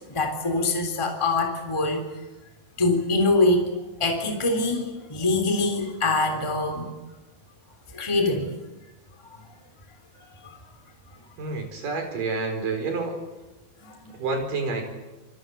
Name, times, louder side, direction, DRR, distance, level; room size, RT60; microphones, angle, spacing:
voice 1, 0.1-2.1 2.8-3.7 4.0-6.9 7.9-8.6 9.3-9.4 10.4-10.6 13.8-14.2, left 2 dB, 10° left, 3 dB, 3.1 m, -24 dB
voice 2, 11.4-13.2 14.1-14.9, right 3 dB, 65° right, 5 dB, 6.0 m, -28 dB
28.5 x 22.5 x 7.8 m, 1.1 s
omnidirectional pair, 4.2 m